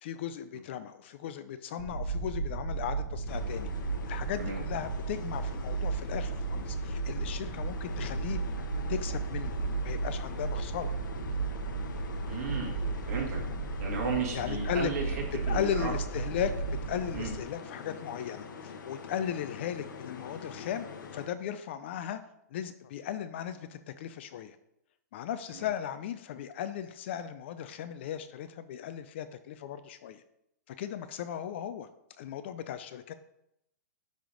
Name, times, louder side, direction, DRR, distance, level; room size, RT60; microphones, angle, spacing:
voice 1, 0.0-3.7 4.0-8.4 8.9-9.6 9.8-10.9 14.3-14.9 15.5-20.9 21.1-22.2 22.5-24.6 25.1-30.2 30.7-31.9 32.2-33.1, left 9 dB, 35° left, 11 dB, 0.3 m, -36 dB
sound 1, 1.8-17.4, right 4 dB, 65° right, 2.0 m, -34 dB
sound 2, 3.3-21.3, left 6 dB, 85° left, 1.0 m, -45 dB
voice 2, 12.3-12.8 13.0-13.4 13.8-15.1 15.5-15.9 17.1-17.3 25.5-25.7, right 5 dB, 50° right, -1 dB, 2.1 m, -34 dB
10.0 x 3.4 x 3.8 m, 0.80 s
hypercardioid pair, 170°, 10 cm